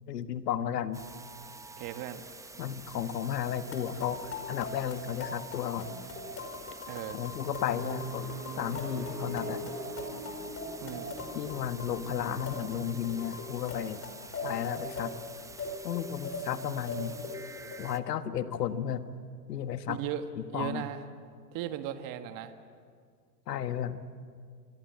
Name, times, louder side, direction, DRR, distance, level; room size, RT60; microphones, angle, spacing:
voice 1, 0.1-1.0 2.6-5.9 7.1-8.3 8.6-9.6 11.3-14.0 14.4-15.1 15.8-17.1 17.8-19.0 19.5-20.0 20.5-20.8 23.5-24.0, left 9 dB, 75° left, 11 dB, 1.5 m, -33 dB
sound 1, 0.9-18.0, right 3 dB, 5° right, 0.8 m, -49 dB
voice 2, 1.8-2.2 6.9-7.2 10.8-11.2 19.9-21.0 21.5-22.5, right 10 dB, 40° right, 9 dB, 1.7 m, -37 dB
sound 2, 3.4-17.8, left 3 dB, 30° left, 5.3 m, -41 dB
sound 3, 7.4-13.2, right 1 dB, 70° right, 7.8 m, -42 dB
27.0 x 22.0 x 7.7 m, 2.1 s
hypercardioid pair, 95°, 49 cm